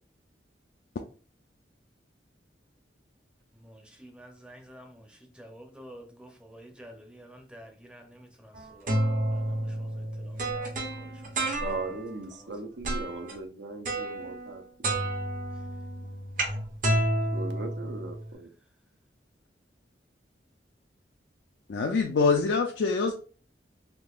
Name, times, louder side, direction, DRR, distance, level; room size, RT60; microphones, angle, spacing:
voice 1, 3.5-11.9 12.4-12.5 15.5-15.6, equal, 5° right, 0.6 m, -51 dB
sound 1, 8.6-12.1 12.8-13.3 13.9-14.6 14.8-18.3, right 1 dB, 50° right, 0.8 m, -30 dB
voice 2, 11.6-14.6 17.3-18.5, right 3 dB, 80° right, 0.6 m, -38 dB
voice 3, 21.7-23.1, left 4 dB, 75° left, 0.4 m, -24 dB
3.7 x 2.7 x 2.4 m
head